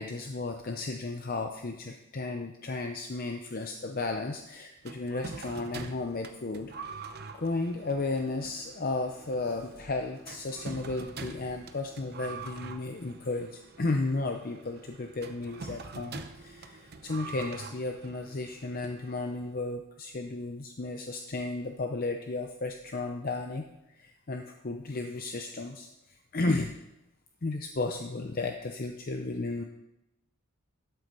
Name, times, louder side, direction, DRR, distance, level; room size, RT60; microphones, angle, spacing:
voice 1, 0.0-6.9 7.3-26.7 27.4-29.6, left 3 dB, 40° left, 4 dB, 0.6 m, -34 dB
sound 1, 4.8-19.5, right 4 dB, 45° right, 0.8 m, -45 dB
12.5 x 7.8 x 5.3 m, 0.92 s
head